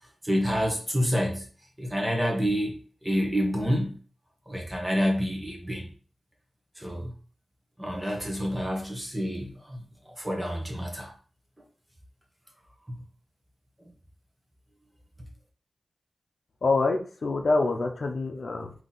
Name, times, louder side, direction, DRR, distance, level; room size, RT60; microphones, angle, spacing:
voice 1, 0.2-1.5 1.8-2.8 3.0-3.9 4.5-5.9 6.8-7.1 7.8-9.8 10.2-11.1 12.9-13.0, equal, 10° right, 1.0 m, -28 dB
voice 2, 16.6-18.7, left 3 dB, 60° left, 0.7 m, -26 dB
3.8 x 2.9 x 3.9 m
wide cardioid pair, 105°, 0 cm